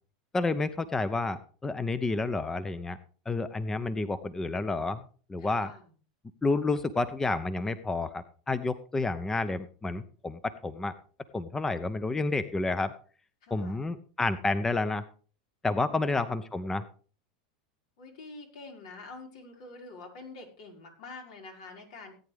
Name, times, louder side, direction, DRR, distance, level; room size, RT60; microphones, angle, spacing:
voice 1, 0.3-3.0 3.3-5.0 5.3-5.7 6.4-11.0 11.3-12.9 13.5-15.0 15.6-16.9, left 3 dB, 10° left, 14 dB, 0.7 m, -30 dB
voice 2, 5.4-5.9 13.4-13.8 16.0-16.2 18.0-22.1, left 3 dB, 75° left, 1 dB, 5.3 m, -46 dB
18.0 x 9.5 x 3.5 m, 0.41 s
supercardioid pair, 120°, 4 cm